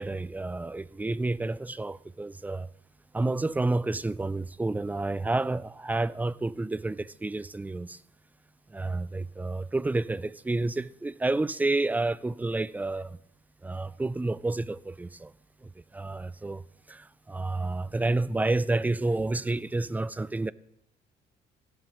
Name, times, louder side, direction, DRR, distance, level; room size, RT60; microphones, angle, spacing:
voice 1, 0.0-2.7 3.1-8.0 8.7-13.2 13.6-15.3 15.6-16.6 16.9-20.5, right 2 dB, 10° right, 0.3 m, -30 dB
16.5 x 11.5 x 3.1 m
cardioid pair, 110°, 17 cm